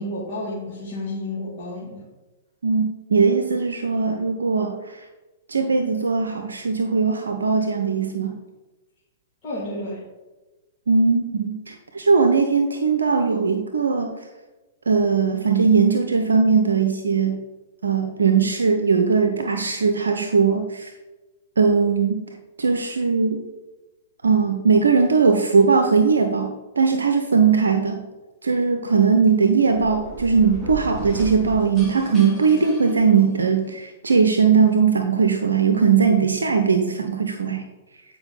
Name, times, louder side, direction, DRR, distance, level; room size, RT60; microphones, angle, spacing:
voice 1, 0.0-2.0 9.4-10.0, left 1 dB, 40° left, -9 dB, 2.3 m, -31 dB
voice 2, 2.6-5.0 5.5-8.3 10.9-14.1 14.9-17.4 17.8-20.9 21.6-23.4 24.2-28.0 28.4-37.6, right 5 dB, 70° right, 6 dB, 0.6 m, -19 dB
sound 1, 29.7-33.7, right 2 dB, 10° left, 2.7 m, -36 dB
8.9 x 4.8 x 3.8 m, 1.1 s
figure-of-eight pair, 110°, 0 cm